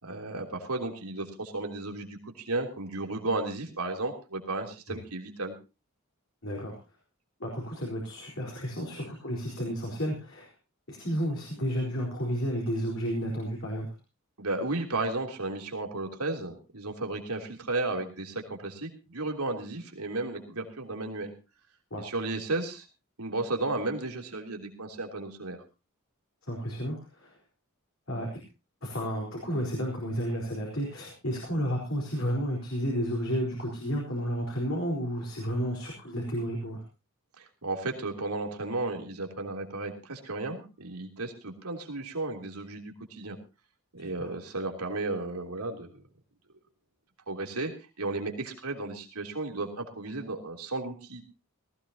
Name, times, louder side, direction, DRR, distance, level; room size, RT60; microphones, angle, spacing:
voice 1, 0.0-5.5 14.4-21.3 22.0-22.8 23.2-25.6 37.4-43.4 43.9-45.9 47.3-47.7 48.0-51.2, right 2 dB, 90° right, 3 dB, 3.2 m, -34 dB
voice 2, 6.4-6.8 7.4-10.5 10.9-13.9 21.9-22.1 26.4-27.3 28.1-28.3 28.8-36.8 44.0-44.3, equal, 60° left, -2 dB, 4.3 m, -32 dB
18.5 x 16.0 x 2.9 m, 0.30 s
head